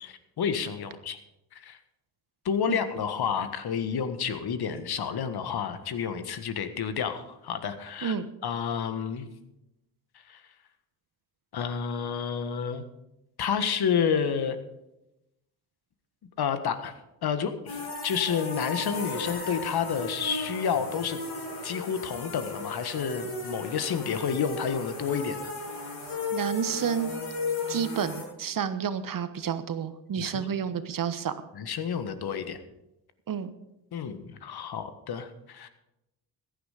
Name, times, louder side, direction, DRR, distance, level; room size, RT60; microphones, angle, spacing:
voice 1, 0.0-1.2 1.5-1.8 2.4-8.2 8.4-9.3 10.3-10.4 11.5-12.8 13.4-14.6 16.4-16.9 17.2-21.2 21.6-25.5 30.2-30.5 31.5-32.6 33.9-35.7, left 7 dB, 50° left, 10 dB, 1.5 m, -30 dB
sound 1, 17.7-28.2, left 2 dB, 70° left, 5.8 m, -35 dB
voice 2, 26.3-27.1 27.7-31.3 33.3-33.5, right 7 dB, 40° right, 12 dB, 1.2 m, -30 dB
15.0 x 10.5 x 5.0 m, 0.91 s
hypercardioid pair, 55°, 50 cm